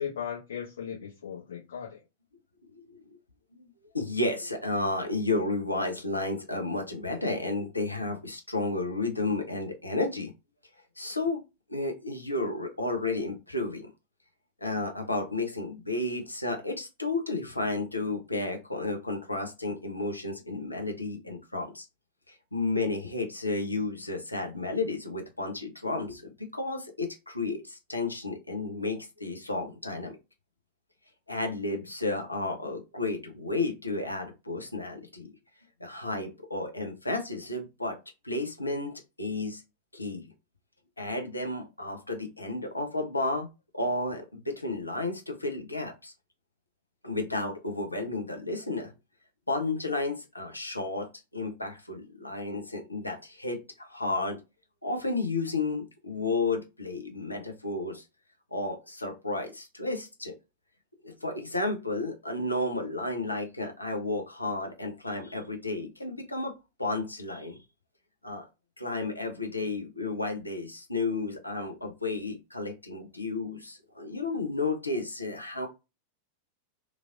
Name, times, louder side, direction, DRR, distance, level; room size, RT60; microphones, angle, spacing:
voice 1, 0.0-2.0, left 8 dB, 65° left, 1.0 m, -37 dB
voice 2, 3.9-10.3 11.0-11.4 11.7-13.9 14.6-21.9 22.3-30.1 31.3-35.3 35.8-38.0 38.2-39.6 39.9-40.3 41.0-43.5 43.7-46.1 47.0-48.9 49.5-51.1 51.3-54.4 54.8-58.0 58.5-60.3 61.0-66.5 66.8-67.6 68.2-68.5 68.8-75.7, left 2 dB, 85° left, 0.6 m, -32 dB
3.1 x 2.5 x 2.4 m
figure-of-eight pair, 90°, 0 cm